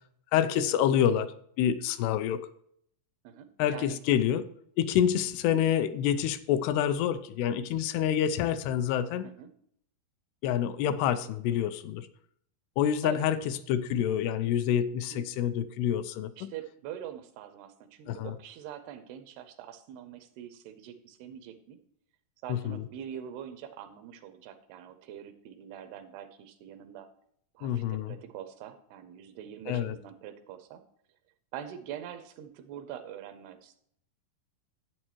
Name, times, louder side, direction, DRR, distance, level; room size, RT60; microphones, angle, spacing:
voice 1, 0.3-2.4 3.6-4.4 4.8-9.3 10.4-12.1 12.8-13.4 13.7-16.5 18.1-18.4 22.5-22.8 27.6-28.2 29.7-30.0, left 10 dB, 85° left, 12 dB, 2.6 m, -27 dB
voice 2, 3.2-4.0 9.2-9.5 13.0-13.3 15.1-15.2 16.4-21.8 22.4-27.1 27.5-30.8 31.5-33.8, right 10 dB, 85° right, 9 dB, 2.8 m, -44 dB
11.0 x 8.7 x 3.0 m, 0.67 s
omnidirectional pair, 4.6 m